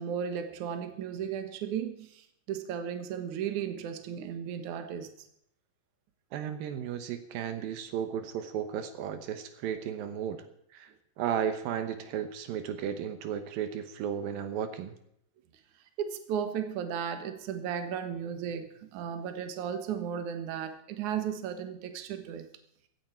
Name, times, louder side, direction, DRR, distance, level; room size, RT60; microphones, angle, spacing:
voice 1, 0.0-5.1 16.0-22.5, right 8 dB, 65° right, 7 dB, 2.6 m, -35 dB
voice 2, 6.3-10.5 10.7-14.9, right 9 dB, 80° right, 9 dB, 2.8 m, -34 dB
16.0 x 15.5 x 4.5 m, 0.73 s
omnidirectional pair, 4.1 m